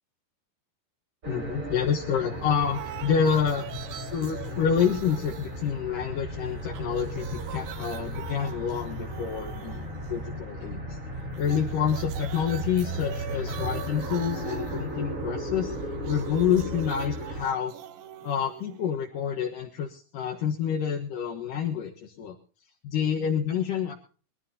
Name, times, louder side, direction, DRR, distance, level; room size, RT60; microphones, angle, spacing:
sound 1, 1.2-17.4, equal, 35° right, 1.3 m, -35 dB
voice 1, 1.3-3.7 4.1-11.0 11.4-15.8 16.1-17.7 18.2-22.4 22.8-23.9, left 8 dB, 65° left, 0 dB, 2.2 m, -28 dB
sound 2, 2.3-6.3 6.6-10.4 11.3-19.3, right 12 dB, 85° right, 2.0 m, -43 dB
24.5 x 13.5 x 2.8 m, 0.39 s
omnidirectional pair, 5.6 m